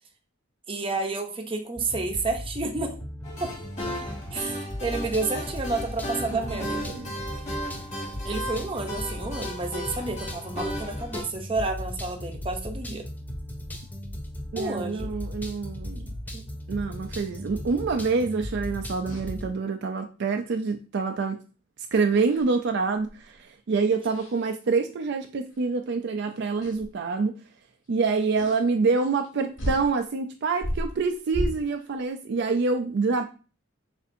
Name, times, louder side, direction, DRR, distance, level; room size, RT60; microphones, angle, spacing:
voice 1, 0.7-3.0 3.4-3.5 4.3-7.0 8.2-13.1 14.6-15.2 16.3-16.5, right 3 dB, 25° right, 4 dB, 0.7 m, -30 dB
sound 1, 1.8-19.5, left 1 dB, 10° left, 0.4 m, -37 dB
sound 2, 3.2-11.2, equal, 35° left, 1.4 m, -35 dB
voice 2, 6.3-7.2 14.5-16.1 16.7-21.4 21.9-27.4 27.9-33.2, right 4 dB, 60° right, 5 dB, 0.4 m, -26 dB
sound 3, 19.1-19.3 21.9-22.6 23.0-23.3 24.1-24.4 25.6-25.7 26.6-26.9 28.3-28.6 29.2-29.3 29.6-29.9 30.5-31.9, equal, 75° left, 2.5 m, -33 dB
6.6 x 2.6 x 2.6 m, 0.34 s
head